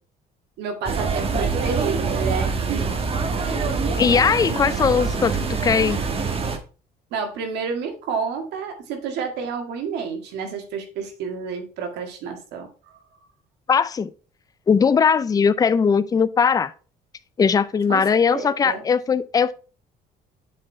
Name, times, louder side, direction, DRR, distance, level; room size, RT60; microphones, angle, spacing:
voice 1, 0.6-3.0 7.1-13.0 17.9-18.1 18.3-18.8, right 5 dB, 85° right, 1.8 m, -30 dB
sound 1, 0.8-6.6, right 4 dB, 35° right, 1.2 m, -25 dB
voice 2, 4.0-6.0 13.7-14.1 14.7-16.7 17.4-19.5, left 6 dB, 20° left, 0.4 m, -19 dB
7.5 x 4.5 x 4.4 m
cardioid pair, 110°, 17 cm